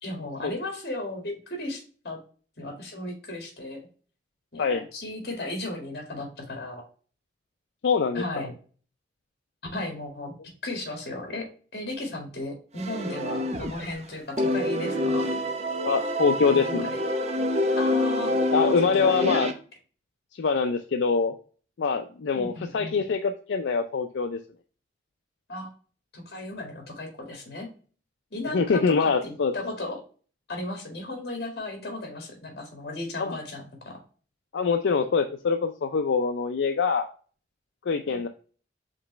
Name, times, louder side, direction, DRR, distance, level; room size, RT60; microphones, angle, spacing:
voice 1, 0.0-2.2 2.6-3.8 4.5-6.8 8.1-8.5 9.7-10.3 10.6-11.5 11.7-15.3 16.5-17.0 17.8-18.5 19.0-19.4 22.3-23.0 25.5-25.7 26.1-27.7 28.3-30.0 30.5-34.0 38.1-38.3, left 2 dB, 60° left, 2 dB, 1.9 m, -35 dB
voice 2, 7.8-8.2 14.4-14.5 15.8-16.9 18.5-19.5 20.4-21.3 21.8-24.4 28.5-29.5 33.2-33.3 34.5-37.1 37.9-38.3, left 5 dB, 85° left, 6 dB, 0.4 m, -24 dB
sound 1, 12.8-14.0 14.4-19.5, left 1 dB, 40° right, 0.6 m, -27 dB
5.1 x 3.4 x 3.0 m, 0.40 s
head